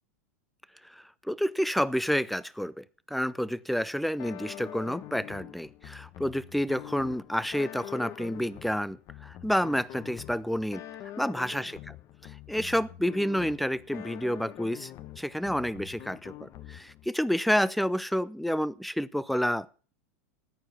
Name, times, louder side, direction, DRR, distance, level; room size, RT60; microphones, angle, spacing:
voice 1, 0.8-10.8 11.2-11.7 12.2-19.9, equal, ahead, 0.6 m, -29 dB
sound 1, 4.2-17.1, left 12 dB, 40° left, 1.2 m, -45 dB
14.5 x 9.6 x 7.1 m
supercardioid pair, 125°, 8 cm